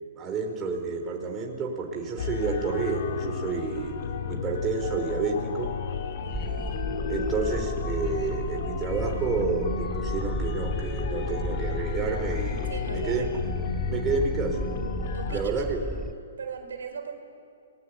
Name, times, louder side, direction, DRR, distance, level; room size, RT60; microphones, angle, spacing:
voice 1, 0.2-4.0 4.3-5.8 7.1-13.3 13.9-14.7 15.3-15.8, right 4 dB, 20° right, 1 dB, 4.5 m, -30 dB
sound 1, 2.2-15.4, left 6 dB, 55° left, 2.3 m, -33 dB
voice 2, 6.2-6.8 12.5-13.3 15.1-15.7 16.4-17.1, right 5 dB, 70° right, 5 dB, 4.5 m, -38 dB
sound 2, 6.3-16.1, equal, 5° right, 0.7 m, -34 dB
28.5 x 21.0 x 9.8 m, 2.3 s
hypercardioid pair, 125°, 0 cm